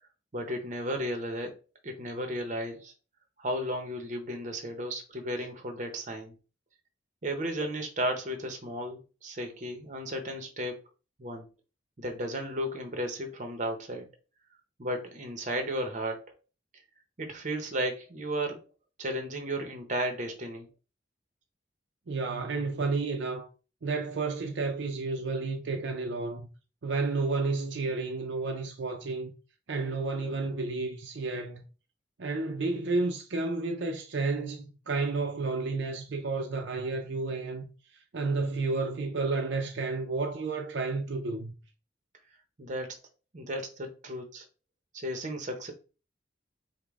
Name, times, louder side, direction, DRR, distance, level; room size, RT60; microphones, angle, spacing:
voice 1, 0.3-1.5 1.8-2.9 3.4-6.3 7.2-10.8 11.2-11.5 12.0-14.1 14.8-16.3 17.2-18.6 19.0-20.7 42.6-43.0 43.3-44.4 44.9-45.7, equal, 40° right, 0.8 m, -34 dB
voice 2, 22.1-23.5 23.8-26.5 26.8-29.3 29.7-31.6 32.2-37.7 38.1-41.5, right 3 dB, 70° right, 0.5 m, -31 dB
5.0 x 2.2 x 3.5 m
head